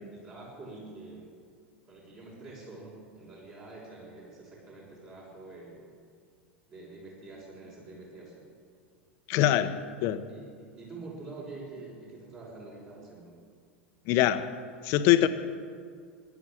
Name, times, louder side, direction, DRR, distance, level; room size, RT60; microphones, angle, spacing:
voice 1, 0.1-1.3 1.9-5.8 6.7-8.5 9.4-9.7 10.3-13.4, right 2 dB, 35° right, -6 dB, 5.9 m, -46 dB
voice 2, 9.3-9.7 10.0-10.2 14.1-14.5 14.8-15.3, left 13 dB, 45° left, 10 dB, 0.9 m, -23 dB
15.0 x 11.0 x 8.8 m, 2.1 s
figure-of-eight pair, 85°, 6 cm